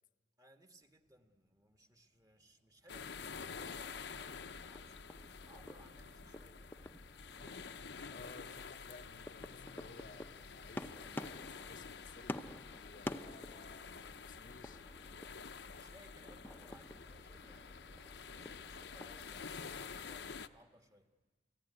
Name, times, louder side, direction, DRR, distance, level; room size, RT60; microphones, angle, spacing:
voice 1, 0.4-5.0 5.4-6.7 15.4-21.1, equal, 20° right, 1.6 m, -64 dB
sound 1, 0.8-19.7, left 1 dB, 55° right, 3.9 m, -70 dB
sound 2, 2.9-20.5, left 5 dB, 80° left, 0.8 m, -49 dB
sound 3, 3.2-19.4, left 1 dB, 10° left, 0.7 m, -51 dB
voice 2, 8.1-14.8, left 3 dB, 50° left, 0.8 m, -58 dB
29.5 x 17.5 x 9.9 m
head